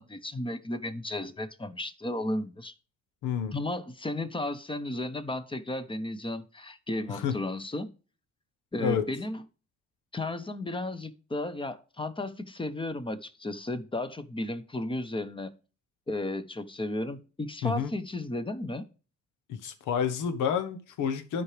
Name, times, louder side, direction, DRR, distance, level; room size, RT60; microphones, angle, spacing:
voice 1, 0.0-2.7 3.5-7.9 8.7-9.4 10.1-15.5 16.1-18.8, left 1 dB, 15° left, 1.0 m, -34 dB
voice 2, 3.2-3.5 7.1-7.4 8.8-9.0 17.6-17.9 19.5-21.4, left 7 dB, 85° left, 1.1 m, -29 dB
12.5 x 5.0 x 3.3 m
cardioid pair, 90°, 30 cm